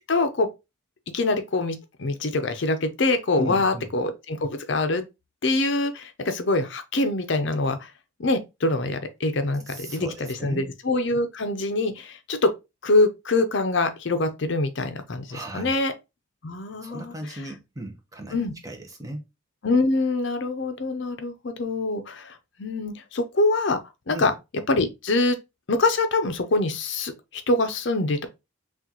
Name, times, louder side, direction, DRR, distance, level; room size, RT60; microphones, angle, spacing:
voice 1, 0.1-0.5 1.1-5.1 5.4-7.9 8.2-12.5 12.8-15.9 16.4-17.4 18.3-18.5 19.6-23.8 24.1-24.3 24.7-25.4 25.7-28.3, left 2 dB, 60° left, 0.6 m, -24 dB
voice 2, 3.4-3.9 9.7-10.7 15.3-15.8 16.5-16.6 16.8-18.4 18.6-19.3 24.1-24.3, right 1 dB, 15° right, 0.8 m, -36 dB
6.0 x 2.4 x 2.9 m
head